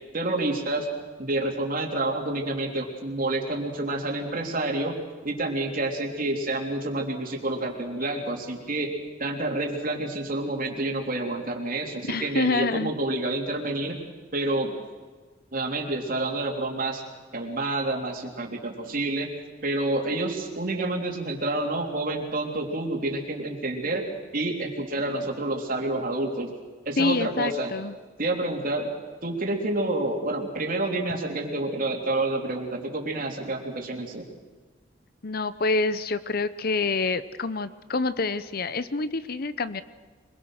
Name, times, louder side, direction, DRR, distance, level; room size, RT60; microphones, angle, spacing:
voice 1, 0.1-0.9 1.2-5.0 5.2-8.9 9.2-14.0 14.3-14.8 15.5-17.0 17.3-19.3 19.6-24.1 24.3-26.5 26.9-27.7 28.2-28.9 29.2-34.3, right 2 dB, 50° right, 1 dB, 3.6 m, -28 dB
voice 2, 12.1-12.9 27.0-27.9 35.2-39.8, left 3 dB, 55° left, 14 dB, 0.8 m, -27 dB
25.5 x 21.5 x 6.6 m, 1.4 s
head